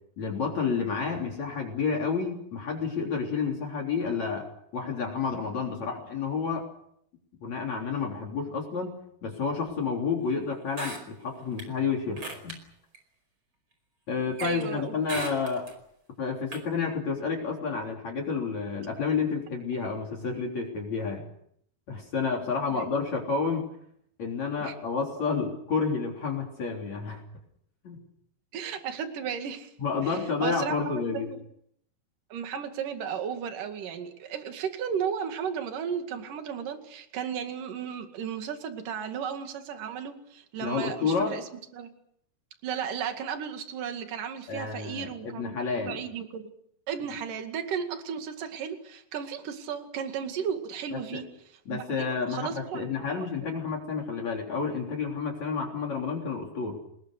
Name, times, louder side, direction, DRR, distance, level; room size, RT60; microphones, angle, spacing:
voice 1, 0.2-4.5 4.7-6.7 7.4-9.0 9.2-12.6 14.1-15.7 16.2-21.2 21.9-23.7 24.2-27.2 27.8-28.0 29.8-31.3 40.6-41.4 44.5-46.0 50.9-51.2 51.7-56.8, left 5 dB, 50° left, 0 dB, 4.7 m, -30 dB
sound 1, 10.7-11.6 12.2-12.6 12.9-13.0 14.4-14.7 15.1-15.7 16.5-16.6, right 2 dB, 30° right, 5.6 m, -37 dB
voice 2, 14.4-15.0 22.8-22.9 24.6-24.7 28.5-29.7 30.0-31.4 32.3-41.4 41.7-41.9 42.6-45.6 45.9-46.5 46.9-51.3 51.7-52.9 53.2-53.3, right 7 dB, 60° right, 6 dB, 3.6 m, -34 dB
29.0 x 21.0 x 6.7 m, 0.70 s
omnidirectional pair, 4.3 m